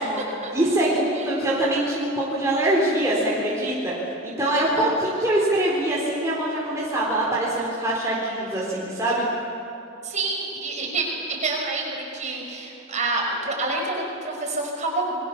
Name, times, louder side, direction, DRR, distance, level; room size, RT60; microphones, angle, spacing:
voice 1, 0.5-3.9 4.2-9.3, right 1 dB, 15° right, -6 dB, 3.9 m, -23 dB
voice 2, 4.4-5.0 10.0-15.2, right 3 dB, 35° right, 0 dB, 5.9 m, -28 dB
30.0 x 22.5 x 7.1 m, 2.9 s
head